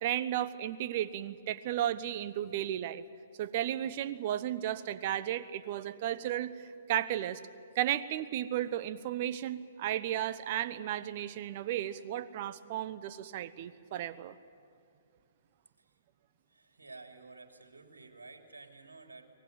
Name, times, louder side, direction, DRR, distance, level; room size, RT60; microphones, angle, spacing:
voice 1, 0.0-3.0 3.4-7.4 7.7-14.3, right 12 dB, 45° right, 14 dB, 1.0 m, -34 dB
voice 2, 16.5-19.3, right 3 dB, 85° right, 4 dB, 3.0 m, -52 dB
23.5 x 19.5 x 9.5 m, 2.4 s
figure-of-eight pair, 120°, 0 cm